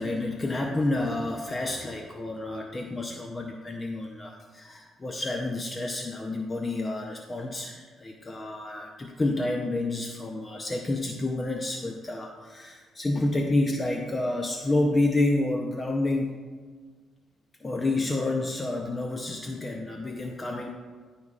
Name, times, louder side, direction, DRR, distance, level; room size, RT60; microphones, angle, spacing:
voice 1, 0.0-16.4 17.6-20.7, left 2 dB, 25° left, 2 dB, 0.7 m, -29 dB
13.5 x 5.4 x 2.4 m, 1.5 s
cardioid pair, 90°, 0 cm